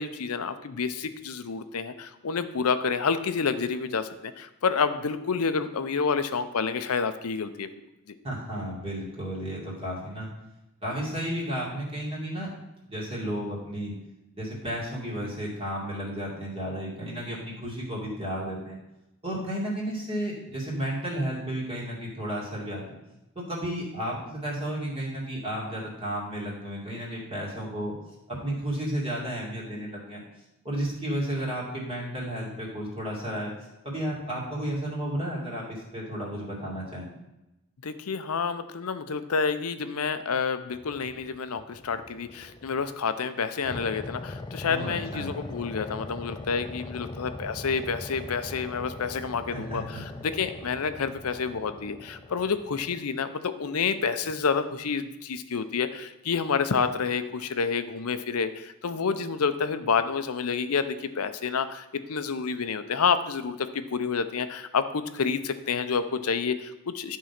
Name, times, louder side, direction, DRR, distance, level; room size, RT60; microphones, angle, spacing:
voice 1, 0.0-7.7 37.8-67.2, left 5 dB, 75° left, 11 dB, 0.6 m, -29 dB
voice 2, 8.2-10.3 10.8-12.5 12.8-13.9 14.3-18.8 19.2-23.0 23.4-28.0 28.3-30.2 30.6-33.5 33.8-37.1 44.6-45.3 49.5-50.2, right 1 dB, 25° right, -5 dB, 2.4 m, -33 dB
sound 1, 40.7-43.0 43.6-53.0, left 2 dB, 20° left, 0.5 m, -41 dB
11.0 x 3.8 x 5.9 m, 0.95 s
head